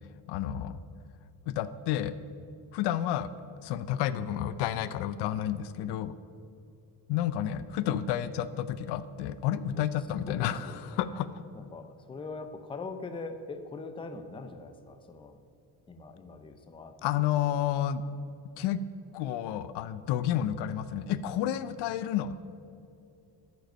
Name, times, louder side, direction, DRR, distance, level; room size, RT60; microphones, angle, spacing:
voice 1, 0.3-0.8 1.5-2.2 2.7-3.3 3.6-6.1 7.1-11.4 17.0-18.0 18.6-18.8 19.1-22.4, left 11 dB, 80° left, 14 dB, 0.6 m, -30 dB
voice 2, 10.3-11.2 11.5-15.4 15.9-16.9, left 3 dB, 15° left, 7 dB, 0.5 m, -42 dB
13.0 x 5.3 x 5.2 m, 2.6 s
cardioid pair, 135°, 40 cm